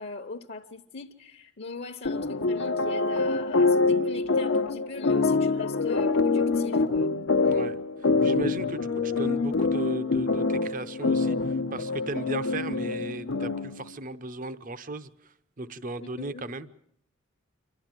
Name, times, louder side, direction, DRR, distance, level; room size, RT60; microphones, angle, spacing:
voice 1, 0.0-7.1 16.0-16.5, left 4 dB, 55° left, 0.9 m, -40 dB
sound 1, 2.0-13.8, left 3 dB, 80° left, 0.9 m, -25 dB
voice 2, 7.4-16.7, right 2 dB, 45° right, 0.8 m, -36 dB
28.0 x 12.5 x 9.0 m
head